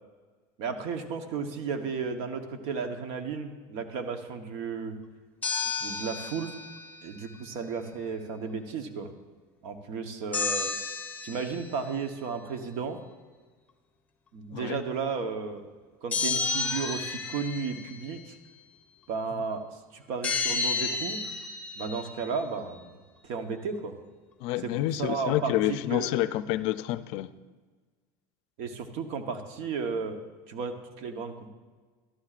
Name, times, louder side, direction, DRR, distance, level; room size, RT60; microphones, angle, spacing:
voice 1, 0.6-4.9 5.8-6.5 7.0-9.1 9.6-10.7 11.2-13.0 14.3-15.6 16.0-18.4 19.1-21.2 21.8-23.0 23.2-23.9 24.6-26.2 28.6-30.2 30.5-31.5, right 5 dB, 65° right, 7 dB, 1.0 m, -34 dB
sound 1, 5.4-7.1 10.3-11.8 16.1-18.0 20.2-22.4, left 4 dB, 15° left, 0.9 m, -32 dB
voice 2, 24.4-27.3, left 14 dB, 60° left, 14 dB, 0.4 m, -28 dB
12.5 x 11.5 x 2.5 m, 1.4 s
supercardioid pair, 140°, 11 cm